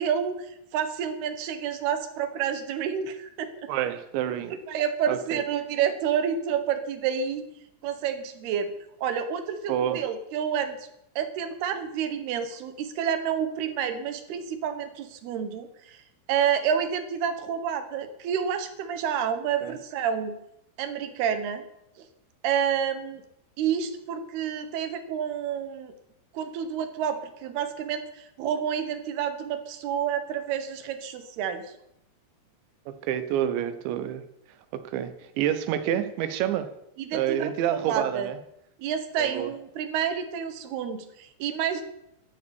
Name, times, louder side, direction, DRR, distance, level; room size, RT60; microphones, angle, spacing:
voice 1, 0.0-3.7 4.5-7.5 7.8-8.7 9.0-10.9 11.2-16.0 16.3-20.3 20.8-21.7 22.0-22.1 22.4-23.2 23.6-25.9 26.3-31.7 37.1-38.3 38.8-41.8, right 8 dB, 70° right, 9 dB, 3.2 m, -29 dB
voice 2, 3.7-4.6 5.1-5.4 9.7-10.0 19.6-19.8 32.9-34.2 34.7-36.7 37.1-38.4 39.2-39.5, right 10 dB, 85° right, 11 dB, 3.4 m, -28 dB
13.0 x 8.8 x 8.7 m, 0.82 s
omnidirectional pair, 5.1 m